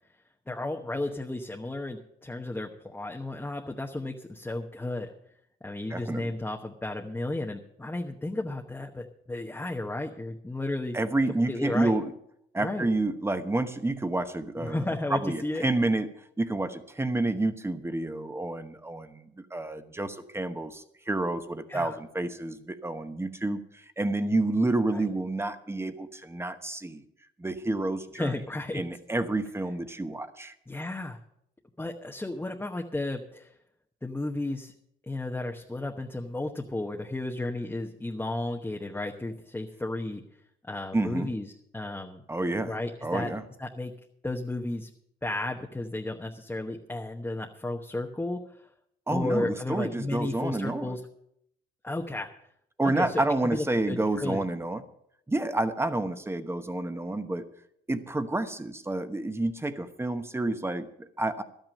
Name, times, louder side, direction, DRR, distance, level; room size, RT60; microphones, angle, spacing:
voice 1, 0.5-5.1 5.6-11.0 11.5-11.9 12.6-12.9 14.6-15.7 21.7-22.0 24.9-25.1 28.1-28.8 30.7-31.2 31.8-33.5 34.0-34.7 35.1-40.2 40.6-41.5 41.7-42.2 42.6-43.3 43.6-43.9 44.2-44.9 45.2-48.4 49.1-51.0 51.8-52.3 52.8-53.2 53.5-54.4, left 2 dB, 10° left, 2 dB, 1.0 m, -33 dB
voice 2, 5.9-6.4 10.9-12.1 12.5-16.1 16.4-27.0 27.4-28.3 28.7-30.5 40.9-41.3 42.3-43.4 49.1-51.0 52.8-54.8 55.3-57.5 57.9-61.4, right 2 dB, 10° right, 10 dB, 1.1 m, -29 dB
12.5 x 9.1 x 6.5 m, 0.74 s
cardioid pair, 90°, 20 cm